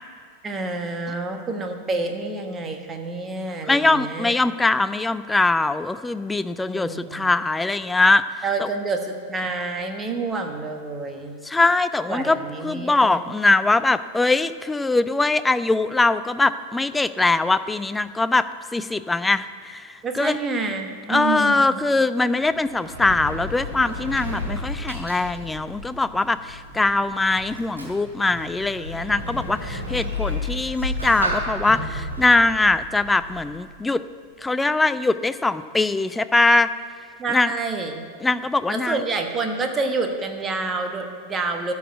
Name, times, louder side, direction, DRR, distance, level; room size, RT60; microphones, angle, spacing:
voice 1, 0.4-4.3 6.6-7.3 8.4-11.4 12.1-13.2 20.0-21.8 37.2-38.0 38.7-41.7, right 3 dB, 20° right, 5 dB, 1.2 m, -28 dB
voice 2, 3.7-8.2 8.6-8.7 11.4-12.4 12.6-18.4 18.7-20.4 21.1-34.0 34.4-36.7 37.3-37.5 38.2-39.0, left 3 dB, 10° left, 14 dB, 0.3 m, -22 dB
Sliding door, 22.4-33.7, left 1 dB, 80° right, 2.4 m, -32 dB
12.5 x 4.8 x 8.4 m, 2.1 s
figure-of-eight pair, 90°, 0 cm